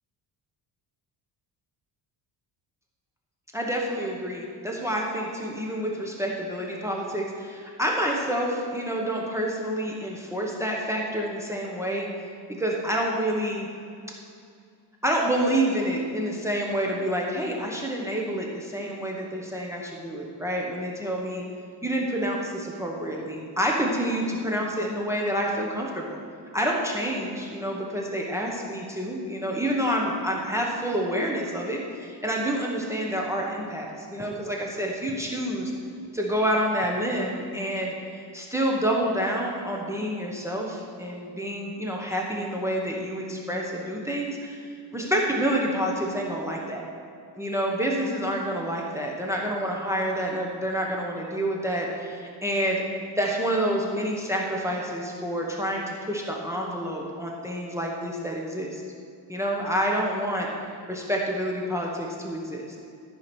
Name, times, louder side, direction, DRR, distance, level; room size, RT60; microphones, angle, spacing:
voice 1, 3.5-12.1 12.6-13.7 15.0-21.4 21.8-26.2 26.5-35.7 36.1-37.9 38.3-44.6 44.9-46.8 47.4-52.8 53.2-58.8 59.3-60.5 60.9-62.6, equal, 5° right, -2 dB, 1.2 m, -28 dB
13.5 x 4.9 x 6.1 m, 2.3 s
cardioid pair, 120°, 44 cm